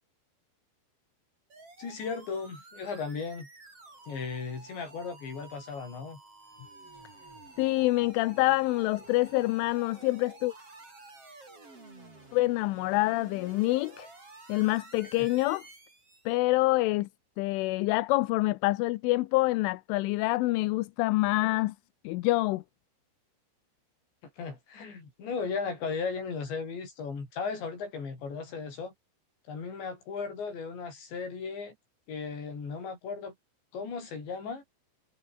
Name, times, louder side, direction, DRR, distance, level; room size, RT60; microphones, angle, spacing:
sound 1, 1.5-16.4, right 3 dB, 30° right, 8.6 m, -51 dB
voice 1, 1.8-3.5 4.1-6.2 15.2-15.3 24.4-28.9 29.5-31.8 32.1-33.3 33.7-34.6, left 5 dB, 65° left, 9.4 m, -36 dB
voice 2, 7.6-10.5 12.3-14.1 14.5-15.6 16.3-17.1 17.4-21.8 22.1-22.6, left 20 dB, 90° left, 3.3 m, -26 dB
omnidirectional pair, 5.4 m